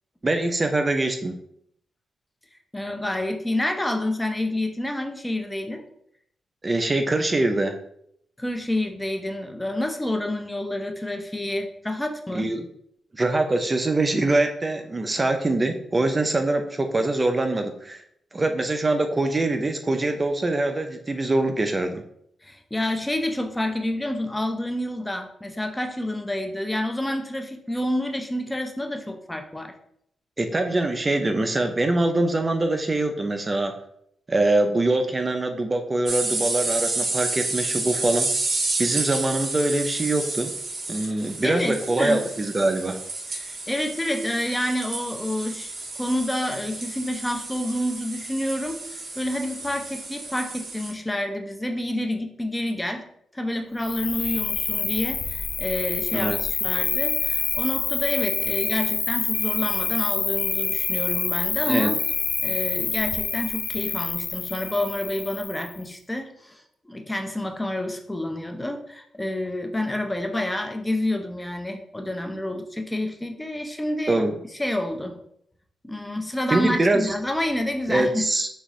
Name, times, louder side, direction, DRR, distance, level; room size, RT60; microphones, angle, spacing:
voice 1, 0.2-1.3 6.6-7.8 12.3-12.7 13.1-18.0 18.3-22.0 30.4-33.7 34.3-38.3 38.8-40.5 40.9-43.0 56.1-56.4 61.7-61.9 74.1-74.4 76.5-77.1 77.9-78.5, right 2 dB, 30° right, 6 dB, 0.5 m, -23 dB
voice 2, 2.7-5.8 8.4-12.5 22.4-29.7 41.4-42.3 43.3-53.0 53.3-56.3 56.6-61.9 62.4-74.2 74.6-75.2 75.8-78.3, left 1 dB, 10° left, 5 dB, 0.6 m, -28 dB
sound 1, 36.1-50.9, right 2 dB, 50° right, 1.5 m, -30 dB
Cricket, 53.8-65.8, left 5 dB, 55° left, 0.5 m, -27 dB
6.2 x 2.5 x 3.1 m, 0.70 s
cardioid pair, 75°, 0 cm